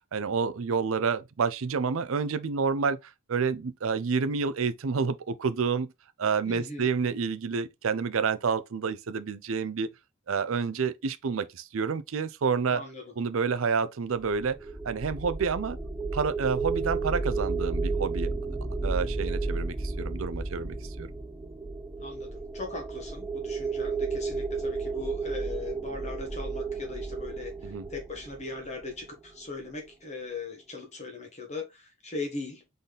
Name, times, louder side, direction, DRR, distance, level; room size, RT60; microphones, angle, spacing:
voice 1, 0.1-3.0 3.3-5.9 6.2-9.9 10.3-12.8 13.2-14.6 14.8-15.8 16.1-18.3 18.8-21.1 27.6-27.9, right 5 dB, 80° right, 0.5 m, -29 dB
voice 2, 6.4-6.9 12.7-13.1 22.0-32.6, left 3 dB, 35° left, 1.3 m, -39 dB
sound 1, 14.2-29.3, right 3 dB, 15° right, 0.5 m, -33 dB
4.1 x 3.9 x 3.3 m
head